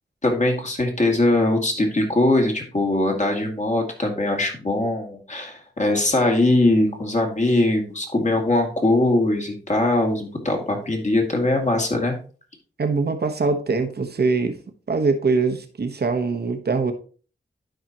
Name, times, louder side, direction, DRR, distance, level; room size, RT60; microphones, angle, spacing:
voice 1, 0.2-12.2, left 2 dB, 40° left, 2.4 m, -21 dB
voice 2, 12.8-14.6 14.9-16.9, right 4 dB, 60° right, 1.2 m, -22 dB
11.5 x 4.9 x 3.0 m
cardioid pair, 55°, 19 cm